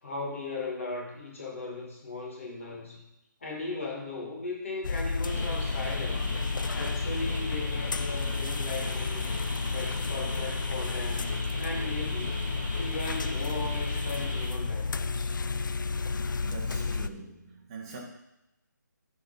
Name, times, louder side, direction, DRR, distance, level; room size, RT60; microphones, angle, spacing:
voice 1, 0.0-3.0 3.4-6.3 6.7-9.4 9.7-12.3 12.8-15.3, left 3 dB, 40° left, -1 dB, 1.9 m, -37 dB
sound 1, 4.8-17.1, left 4 dB, 80° left, 0.4 m, -31 dB
sound 2, 5.2-14.5, left 1 dB, 10° left, 1.0 m, -39 dB
voice 2, 16.4-18.0, right 4 dB, 15° right, -2 dB, 1.1 m, -43 dB
12.5 x 4.2 x 3.9 m, 0.88 s
hypercardioid pair, 175°, 10 cm